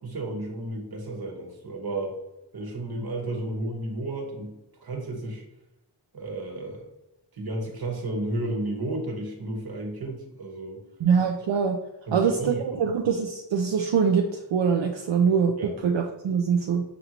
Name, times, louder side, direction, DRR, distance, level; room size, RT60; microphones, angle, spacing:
voice 1, 0.0-2.2 2.5-4.5 4.8-5.4 6.1-6.9 7.3-10.8 12.1-12.9 15.6-15.7, right 2 dB, 55° right, 0 dB, 1.2 m, -32 dB
voice 2, 11.0-11.8 12.1-15.5 15.8-16.8, right 6 dB, 80° right, 2 dB, 0.5 m, -23 dB
5.3 x 2.6 x 2.9 m, 0.94 s
wide cardioid pair, 65°, 44 cm